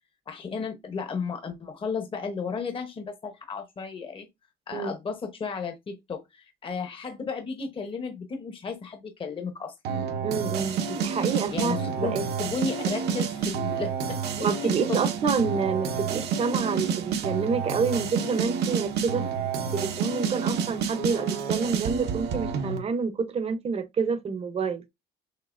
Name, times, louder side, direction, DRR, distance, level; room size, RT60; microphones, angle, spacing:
voice 1, 0.3-4.3 4.7-9.7 11.5-15.0, left 5 dB, 30° left, 0.9 m, -34 dB
sound 1, 9.9-22.8, right 6 dB, 75° right, 1.0 m, -29 dB
voice 2, 10.2-12.2 14.4-19.3 19.7-24.8, right 5 dB, 35° right, 0.8 m, -28 dB
6.6 x 2.7 x 2.5 m
cardioid pair, 110°, 17 cm